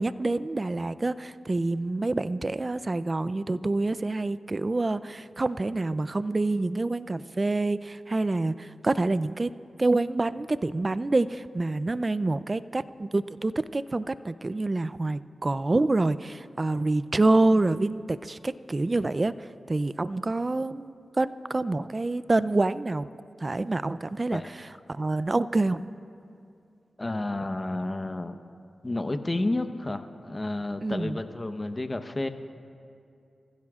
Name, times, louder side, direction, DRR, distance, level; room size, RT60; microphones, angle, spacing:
voice 1, 0.0-9.5 9.8-23.1 23.4-24.4 24.9-25.9 30.8-31.2, right 2 dB, 40° right, 14 dB, 0.5 m, -27 dB
voice 2, 27.0-28.4 28.8-32.3, left 2 dB, 30° left, 8 dB, 1.0 m, -31 dB
28.0 x 15.5 x 2.5 m, 2.5 s
cardioid pair, 50°, 0 cm